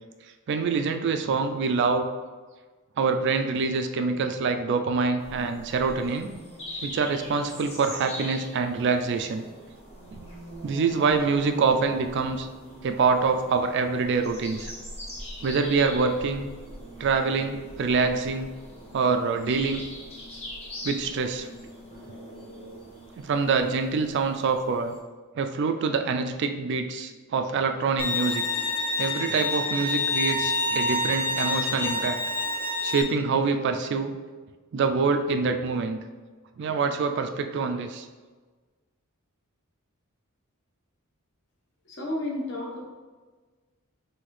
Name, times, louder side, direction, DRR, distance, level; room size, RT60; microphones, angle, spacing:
voice 1, 0.5-2.1 3.0-6.3 6.8-9.5 10.1-10.2 10.6-12.5 12.8-14.7 15.4-16.5 17.0-18.5 18.9-19.8 20.8-21.5 23.2-24.9 25.4-28.4 29.0-32.2 32.8-34.1 34.7-36.0 36.6-38.1, right 4 dB, 55° right, 7 dB, 0.3 m, -25 dB
sound 1, 5.2-25.0, equal, 30° left, 1.1 m, -41 dB
Bowed string instrument, 28.0-33.0, left 2 dB, 10° left, 0.6 m, -27 dB
voice 2, 41.9-42.8, left 1 dB, 55° left, -2 dB, 1.0 m, -31 dB
5.6 x 2.7 x 3.1 m, 1.4 s
head